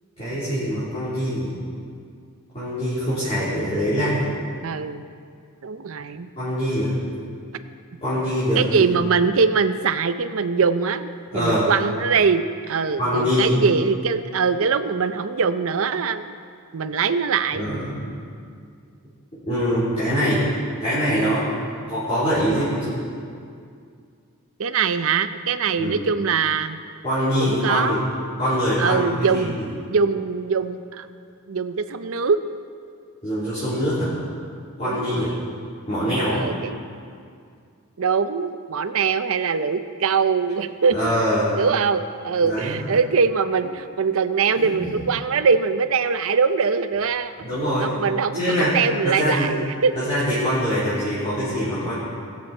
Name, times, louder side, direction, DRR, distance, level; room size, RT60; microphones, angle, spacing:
voice 1, 0.2-1.5 2.5-4.3 6.4-6.9 8.0-8.9 11.3-11.7 13.0-13.6 17.5-17.9 19.5-20.4 20.8-21.5 21.9-23.0 25.8-26.0 27.0-28.0 28.4-29.7 33.2-34.1 34.8-35.3 35.9-36.4 40.9-41.5 42.4-42.8 44.6-44.7 47.4-47.9 48.3-48.8 49.0-49.5 49.9-51.9, equal, 30° left, -14 dB, 3.6 m, -23 dB
voice 2, 4.6-5.0 5.6-6.3 8.5-16.4 16.7-17.6 24.6-26.8 27.4-28.0 28.8-29.6 29.9-31.1 31.5-32.4 34.8-35.4 36.3-36.8 38.0-41.1 41.6-47.3 47.8-49.9 51.8-51.9, right 5 dB, 65° right, 11 dB, 0.6 m, -22 dB
20.0 x 7.5 x 4.4 m, 2.3 s
head